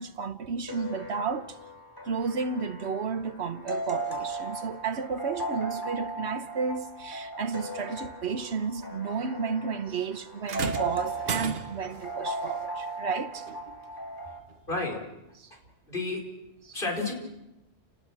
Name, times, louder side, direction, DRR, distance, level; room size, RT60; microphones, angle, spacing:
voice 1, 0.0-1.6 2.0-13.5 15.4-15.5 16.6-16.8, right 5 dB, 85° right, 1.3 m, -32 dB
sound 1, 0.7-14.4, right 1 dB, 20° left, 2.3 m, -37 dB
sound 2, 10.5-12.0 13.5-13.6 14.5-14.6, right 6 dB, 65° right, 1.3 m, -34 dB
voice 2, 14.7-15.0 15.5-15.6 15.9-16.3 16.7-17.1, left 3 dB, 55° left, 5.3 m, -30 dB
30.0 x 19.5 x 6.2 m
omnidirectional pair, 1.1 m